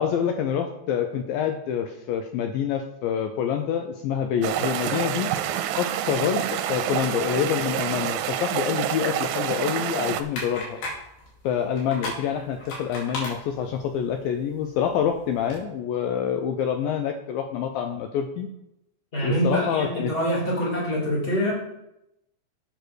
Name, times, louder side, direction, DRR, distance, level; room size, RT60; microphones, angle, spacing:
voice 1, 0.0-5.3 5.8-6.4 6.7-10.8 11.4-18.5 19.2-20.1, left 8 dB, 90° left, 6 dB, 2.0 m, -26 dB
sound 1, 4.4-10.2, right 11 dB, 85° right, 2.6 m, -27 dB
sound 2, 10.1-15.6, left 1 dB, 65° left, 4.4 m, -38 dB
voice 2, 19.1-21.5, equal, 15° left, -4 dB, 2.3 m, -25 dB
7.8 x 6.9 x 6.2 m, 0.85 s
omnidirectional pair, 5.0 m